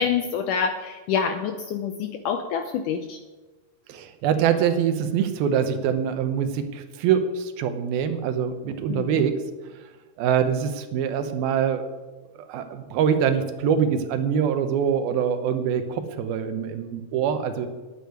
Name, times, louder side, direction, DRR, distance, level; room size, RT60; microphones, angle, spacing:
voice 1, 0.0-3.2 8.9-9.2, left 6 dB, 75° left, 7 dB, 1.9 m, -27 dB
voice 2, 3.9-9.4 9.6-9.7 10.2-11.9 12.4-17.7, right 8 dB, 80° right, 8 dB, 2.8 m, -24 dB
9.9 x 8.5 x 9.4 m, 1.2 s
omnidirectional pair, 4.3 m